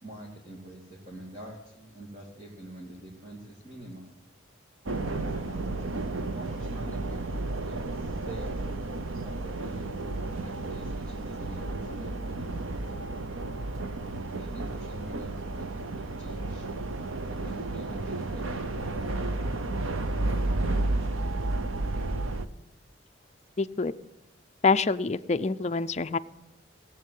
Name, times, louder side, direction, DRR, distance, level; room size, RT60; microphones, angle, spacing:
voice 1, 0.0-4.2 4.9-5.9 6.3-8.7 9.2-9.9 10.4-13.0 14.3-16.7 17.3-19.5, right 1 dB, 30° right, -2 dB, 2.4 m, -46 dB
sound 1, 4.9-22.5, right 2 dB, 85° right, 0.9 m, -32 dB
voice 2, 23.6-23.9 24.6-26.2, left 4 dB, 35° left, 10 dB, 0.5 m, -26 dB
17.5 x 8.4 x 7.5 m, 0.91 s
head